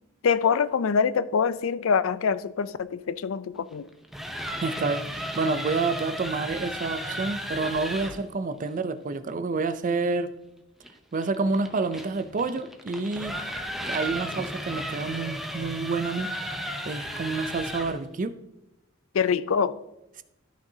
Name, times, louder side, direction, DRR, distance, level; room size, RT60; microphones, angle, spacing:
voice 1, 0.2-3.9 19.1-19.8, left 6 dB, 85° left, 0.4 m, -24 dB
sound 1, 3.9-8.2 10.8-18.1, equal, ahead, 0.7 m, -34 dB
voice 2, 4.6-10.3 11.1-13.3 13.9-16.3 16.9-18.3, right 3 dB, 40° right, 0.5 m, -28 dB
13.0 x 6.1 x 2.8 m
head